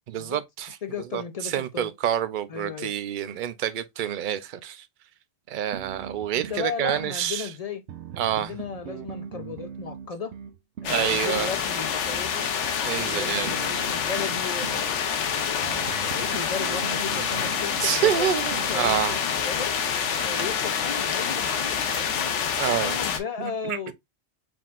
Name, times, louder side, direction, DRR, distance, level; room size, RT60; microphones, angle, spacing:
voice 1, 0.1-0.7 1.1-4.9 5.5-7.5 8.2-8.5 10.9-11.5 12.8-13.5 17.8-19.2 21.9-22.1 22.6-23.0 23.4-23.9, right 10 dB, 55° right, 0.6 m, -27 dB
voice 2, 0.8-1.9 2.5-2.9 6.3-7.8 8.2-10.3 10.8-12.5 12.8-15.8 16.1-18.3 18.7-19.8 20.2-22.3 22.8-23.9, left 5 dB, 55° left, 0.4 m, -35 dB
sound 1, 5.7-7.1 7.9-11.1 13.5-14.9 15.6-18.8, right 8 dB, 75° right, 0.9 m, -40 dB
sound 2, 10.8-23.2, left 7 dB, 80° left, 1.0 m, -27 dB
4.6 x 3.8 x 2.4 m
omnidirectional pair, 1.2 m